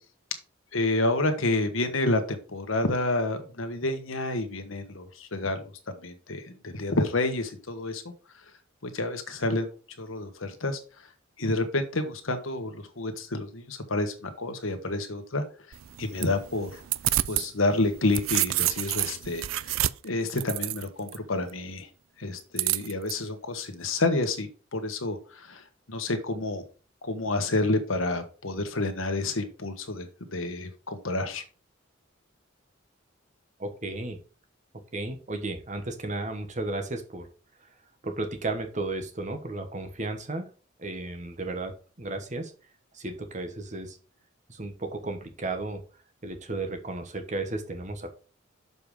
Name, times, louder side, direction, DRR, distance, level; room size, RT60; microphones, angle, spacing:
voice 1, 0.7-8.0 8.8-9.7 10.0-10.8 11.4-15.4 16.0-16.8 17.3-19.5 20.0-21.9 22.2-25.6 25.9-26.6 27.0-30.1 30.3-31.4, left 2 dB, 85° left, 7 dB, 1.4 m, -29 dB
sound 1, 15.7-17.5 17.9-21.2 22.6-23.1, right 15 dB, 85° right, 0.4 m, -28 dB
voice 2, 33.6-34.2 34.9-37.3 38.0-40.5 40.8-42.5 42.9-44.0 44.5-45.8 46.2-48.1, right 2 dB, 35° right, 6 dB, 1.3 m, -34 dB
6.9 x 5.5 x 4.9 m, 0.37 s
head